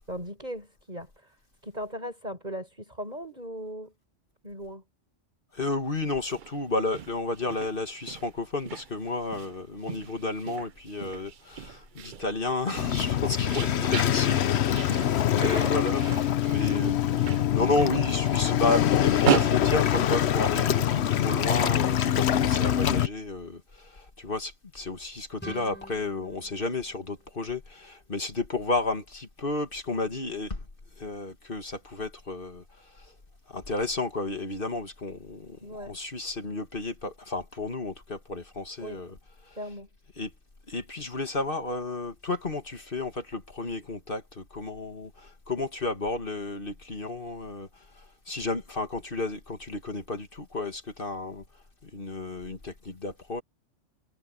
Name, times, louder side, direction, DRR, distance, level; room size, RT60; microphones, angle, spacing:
voice 1, 0.1-1.3 1.6-3.9 4.4-4.8 15.4-15.8 35.6-36.0 38.8-39.0 39.6-39.9, equal, 35° right, 6.5 m, -37 dB
voice 2, 5.5-30.6 31.0-33.1 33.5-39.1 39.4-39.6 40.2-40.3 40.7-51.4 51.8-53.4, left 3 dB, 45° left, 2.0 m, -32 dB
sound 1, 6.2-20.7, right 9 dB, 50° right, 0.6 m, -36 dB
Waves surf, 12.8-23.1, left 10 dB, 65° left, 1.0 m, -24 dB
sound 2, 25.4-28.2, equal, 10° left, 6.4 m, -47 dB
omnidirectional pair, 1.3 m